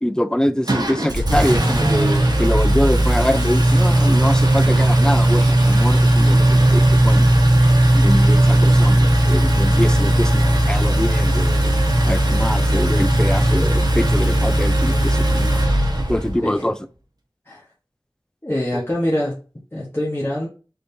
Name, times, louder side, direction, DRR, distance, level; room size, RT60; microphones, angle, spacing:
voice 1, 0.0-7.4 7.9-11.7 12.0-15.6 16.1-16.8 18.7-18.9, equal, 10° left, 0.3 m, -24 dB
Engine, 0.7-16.4, right 1 dB, 50° right, 0.9 m, -16 dB
voice 2, 18.4-19.4 19.7-20.5, left 1 dB, 25° left, 1.2 m, -24 dB
4.0 x 3.5 x 2.6 m
wide cardioid pair, 45°, 9 cm